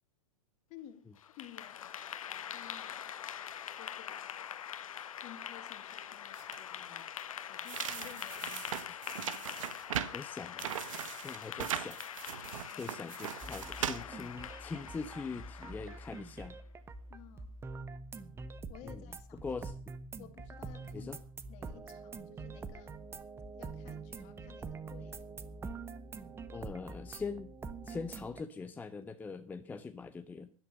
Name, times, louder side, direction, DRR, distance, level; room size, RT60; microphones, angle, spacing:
voice 1, 0.7-1.1 1.4-1.9 2.3-3.1 3.8-4.3 5.2-7.1 7.4-8.9 12.7-13.0 17.1-17.6 18.7-19.7 20.2-21.2 21.5-22.9 23.5-25.2, left 11 dB, 40° left, 2.4 m, -54 dB
Clapping / Applause, 1.2-16.4, left 9 dB, 75° left, 1.2 m, -44 dB
sound 1, 6.4-6.6 7.7-10.2 10.6-14.0, right 10 dB, 65° right, 1.1 m, -39 dB
voice 2, 10.1-10.7 11.1-12.0 12.8-16.6 18.8-19.0 19.4-19.7 20.9-21.2 26.5-27.5 27.8-30.5, left 4 dB, 10° left, 0.6 m, -42 dB
sound 2, 13.4-28.4, right 4 dB, 15° right, 1.0 m, -45 dB
12.0 x 11.5 x 6.6 m
hypercardioid pair, 120°, 18 cm